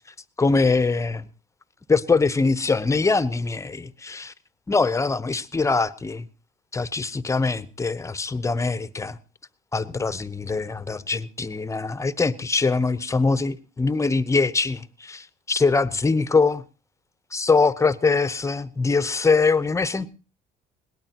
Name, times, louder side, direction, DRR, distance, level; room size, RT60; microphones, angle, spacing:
voice 1, 0.4-1.3 1.9-4.3 4.7-6.3 6.7-9.2 9.7-16.6 17.3-20.1, left 4 dB, 15° left, 0.9 m, -23 dB
21.5 x 18.5 x 2.9 m
cardioid pair, 110°, 17 cm